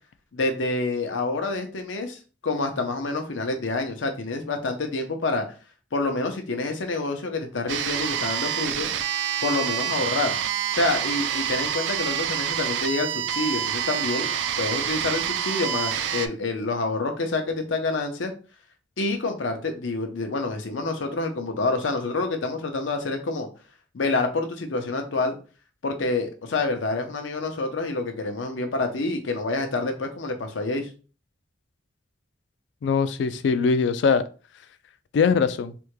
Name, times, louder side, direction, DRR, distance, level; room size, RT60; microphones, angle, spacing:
voice 1, 0.3-5.5 5.9-8.9 9.4-10.4 10.7-14.3 14.6-18.3 19.0-23.5 23.9-25.3 25.8-30.9, left 3 dB, 85° left, 5 dB, 0.7 m, -27 dB
sound 1, 7.7-16.3, right 9 dB, 70° right, 0.3 m, -27 dB
voice 2, 32.8-34.2 35.1-35.7, left 5 dB, 65° left, 13 dB, 0.3 m, -21 dB
3.4 x 2.2 x 3.0 m, 0.36 s
head